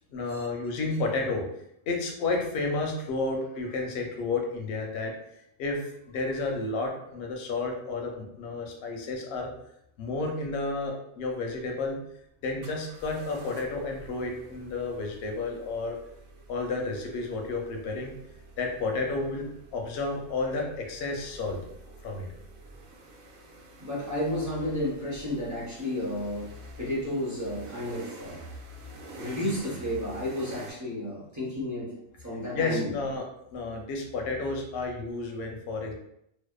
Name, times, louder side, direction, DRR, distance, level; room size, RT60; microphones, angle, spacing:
voice 1, 0.1-1.4 1.9-5.2 5.6-9.5 10.0-12.0 12.4-16.0 16.5-18.1 18.6-19.5 19.7-21.6 22.0-22.3 32.5-33.2 33.5-35.9, left 3 dB, 65° left, 1 dB, 0.6 m, -31 dB
sound 1, 12.6-30.7, right 1 dB, 85° right, 1.0 m, -48 dB
voice 2, 23.8-28.4 29.2-31.9 32.2-32.9, left 1 dB, 20° right, -7 dB, 0.5 m, -32 dB
2.6 x 2.1 x 2.2 m, 0.77 s
omnidirectional pair, 1.4 m